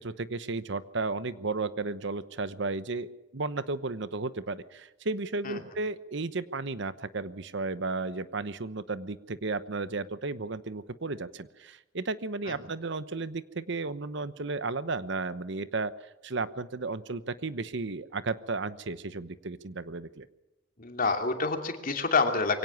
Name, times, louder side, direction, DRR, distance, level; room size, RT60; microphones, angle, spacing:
voice 1, 0.0-20.3, right 3 dB, 65° right, 14 dB, 1.0 m, -34 dB
voice 2, 20.8-22.6, left 4 dB, 45° left, 5 dB, 2.8 m, -27 dB
23.0 x 17.5 x 7.2 m, 0.98 s
head